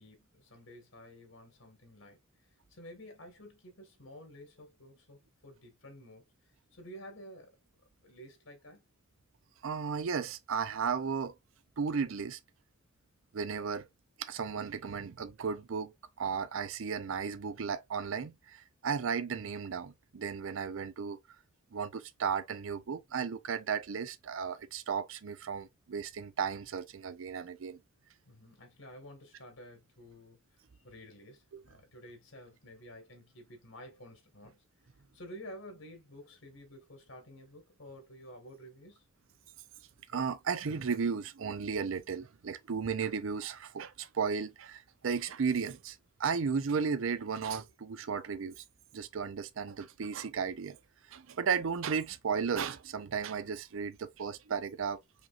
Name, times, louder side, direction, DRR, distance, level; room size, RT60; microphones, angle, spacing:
voice 1, 0.0-2.2 2.7-6.2 6.7-7.6 8.0-8.8 28.3-30.4 30.8-34.6 35.1-39.0, equal, 75° left, 1.6 m, -51 dB
voice 2, 9.6-11.3 11.8-12.4 13.3-13.9 14.2-15.9 16.2-21.2 21.7-27.8 31.5-31.6 40.1-48.6 48.9-50.8 51.1-55.0, right 6 dB, 75° right, 0.5 m, -34 dB
5.0 x 2.9 x 2.4 m
head